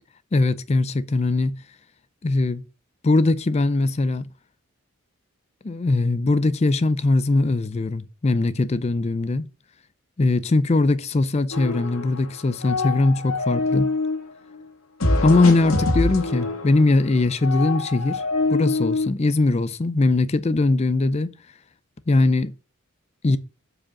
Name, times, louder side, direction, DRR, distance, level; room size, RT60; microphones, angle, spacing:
voice 1, 0.3-1.5 2.2-2.6 3.0-4.3 5.6-9.4 10.2-13.9 15.2-18.2 18.5-21.3 22.1-22.5 23.2-23.4, left 2 dB, 30° left, 0.4 m, -20 dB
sound 1, 11.5-12.3 12.5-14.2 15.0-19.1, left 2 dB, 75° left, 1.9 m, -25 dB
7.3 x 4.9 x 6.3 m
head